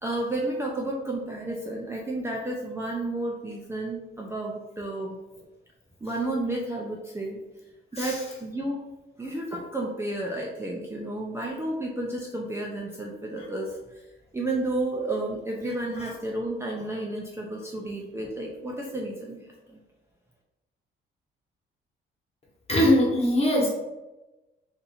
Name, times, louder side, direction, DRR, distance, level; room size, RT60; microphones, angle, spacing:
voice 1, 0.0-5.2 6.0-7.4 7.9-8.8 9.2-13.7 14.3-19.8, right 2 dB, 15° right, -2 dB, 0.5 m, -31 dB
voice 2, 22.7-23.8, left 1 dB, 30° left, -2 dB, 1.2 m, -22 dB
2.7 x 2.6 x 4.2 m, 1.0 s
cardioid pair, 90°, 20 cm